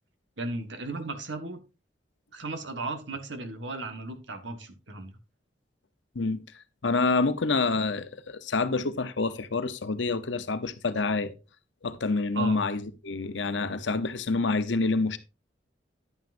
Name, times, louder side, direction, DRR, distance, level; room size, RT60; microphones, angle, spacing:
voice 1, 0.4-1.6 2.3-5.1 12.3-12.6, right 2 dB, 85° right, 1.4 m, -35 dB
voice 2, 6.8-11.3 11.8-15.2, left 3 dB, 85° left, 0.8 m, -27 dB
10.0 x 9.3 x 2.6 m
head